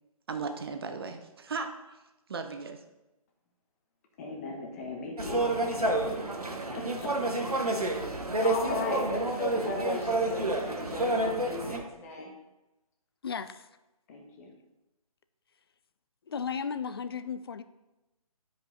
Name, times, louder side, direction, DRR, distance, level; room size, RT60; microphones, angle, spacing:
voice 1, 0.3-2.0 2.3-2.8, right 4 dB, 40° right, 6 dB, 0.7 m, -36 dB
voice 2, 4.2-12.3 14.1-14.5, left 2 dB, 25° left, 2 dB, 1.0 m, -37 dB
sound 1, 5.2-11.8, right 2 dB, 85° right, 1.4 m, -29 dB
voice 3, 13.2-13.7 16.3-17.6, left 6 dB, 40° left, 12 dB, 0.4 m, -35 dB
9.8 x 5.2 x 4.0 m, 1.0 s
figure-of-eight pair, 145°, 19 cm